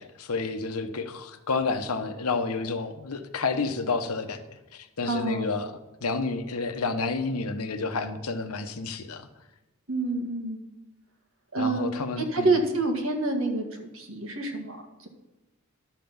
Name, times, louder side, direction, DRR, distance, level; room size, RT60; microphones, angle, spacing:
voice 1, 0.0-5.7 6.0-9.3 11.6-12.5, left 4 dB, 85° left, 9 dB, 1.0 m, -30 dB
voice 2, 5.1-5.5 9.9-10.7 11.5-11.9 12.2-15.1, right 2 dB, 70° right, 4 dB, 1.8 m, -28 dB
11.5 x 5.8 x 7.1 m, 1.0 s
head